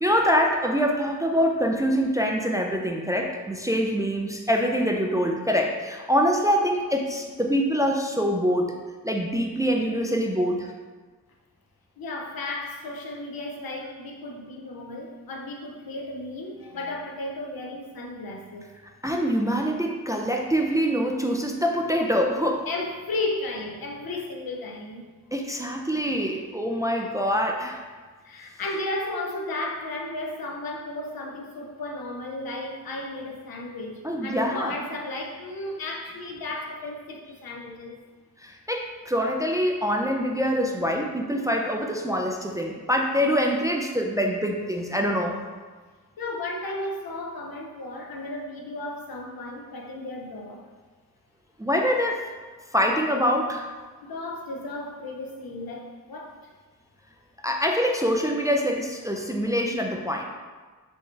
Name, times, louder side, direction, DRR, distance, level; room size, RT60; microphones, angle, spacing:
voice 1, 0.0-8.8 9.0-10.7 19.0-22.7 25.3-27.8 34.0-34.8 38.4-45.4 51.6-52.3 52.7-53.7 57.4-60.2, equal, 10° right, 1 dB, 0.3 m, -25 dB
voice 2, 12.0-18.7 22.7-25.0 28.2-37.9 46.2-50.6 54.1-56.3, left 2 dB, 80° left, 0 dB, 0.8 m, -34 dB
4.4 x 3.3 x 3.2 m, 1.4 s
wide cardioid pair, 95°, 35 cm